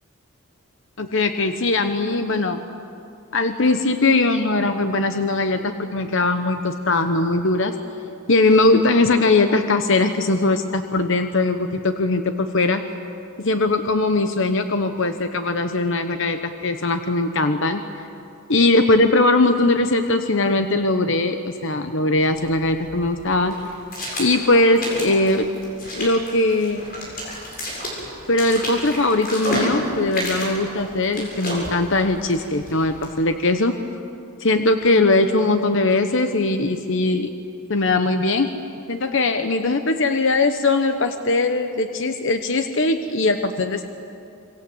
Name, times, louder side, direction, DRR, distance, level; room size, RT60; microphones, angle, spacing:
voice 1, 1.0-2.6 3.3-7.7 8.3-12.8 13.4-17.8 18.5-23.5 24.2-25.5 25.9-26.8 28.3-33.7 34.4-37.3 37.7-38.5 38.9-43.8, left 2 dB, 60° left, 7 dB, 1.1 m, -20 dB
sound 1, 22.1-33.2, equal, 45° left, 7.8 m, -31 dB
27.0 x 25.5 x 8.0 m, 2.6 s
head